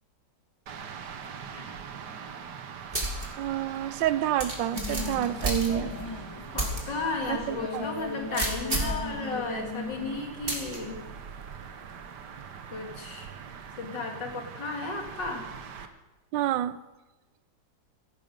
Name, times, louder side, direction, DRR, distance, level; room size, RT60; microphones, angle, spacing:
sound 1, 0.7-15.9, right 7 dB, 70° right, 1.7 m, -43 dB
Loading and cocking a pistol, 2.9-3.3 3.7-3.8 4.4-6.1 6.6-6.8 7.2-7.3 8.3-9.0 10.5-10.8, right 1 dB, 30° right, 2.6 m, -30 dB
voice 1, 3.4-5.9 7.3-7.9 16.3-16.8, right 12 dB, 90° right, 15 dB, 1.4 m, -28 dB
sound 2, 4.7-10.2, left 3 dB, 15° left, 1.7 m, -38 dB
voice 2, 6.5-11.0 12.7-13.3 13.8-15.4, left 3 dB, 80° left, 2 dB, 2.9 m, -34 dB
17.0 x 14.0 x 5.3 m, 1.1 s
omnidirectional pair, 1.9 m